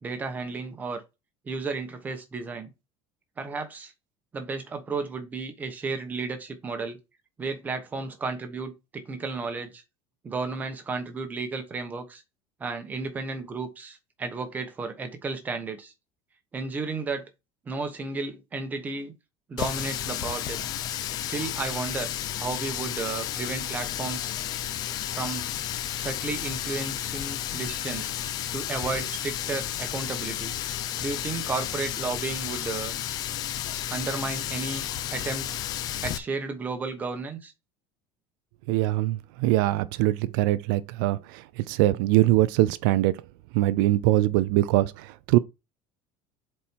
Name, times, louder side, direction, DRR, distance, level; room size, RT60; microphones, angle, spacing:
voice 1, 0.0-1.0 1.4-2.7 3.4-3.9 4.3-7.0 7.4-9.8 10.2-12.2 12.6-15.9 16.5-17.3 17.6-19.1 19.5-20.7 21.3-22.1 22.4-24.3 25.1-25.5 26.0-28.1 28.5-30.5 31.0-32.9 33.9-34.8 35.1-35.6 36.0-37.5, right 4 dB, 15° right, 1.1 m, -33 dB
Water tap faucet, 19.6-36.2, left 11 dB, 35° left, 0.6 m, -32 dB
voice 2, 38.7-43.2 43.5-45.4, right 16 dB, 75° right, 0.5 m, -23 dB
7.2 x 4.4 x 4.5 m
cardioid pair, 175°, 11 cm